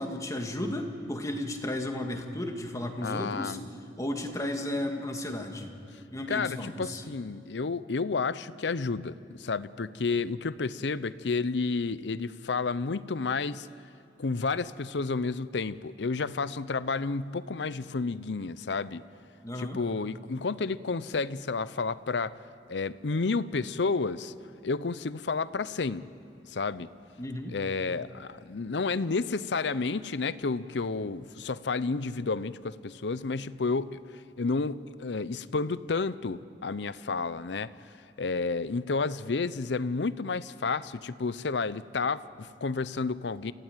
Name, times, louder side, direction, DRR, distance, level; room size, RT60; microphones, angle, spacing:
voice 1, 0.0-3.6 4.0-5.7 6.1-7.0 19.4-19.8 27.2-27.5, left 1 dB, 20° left, 3 dB, 2.1 m, -34 dB
voice 2, 3.0-3.7 6.3-13.7 14.2-19.0 19.6-22.4 22.7-24.3 24.6-26.1 26.5-26.9 27.5-34.0 34.4-37.7 38.2-43.5, left 4 dB, 75° left, 16 dB, 0.7 m, -31 dB
28.5 x 16.0 x 9.1 m, 2.6 s
head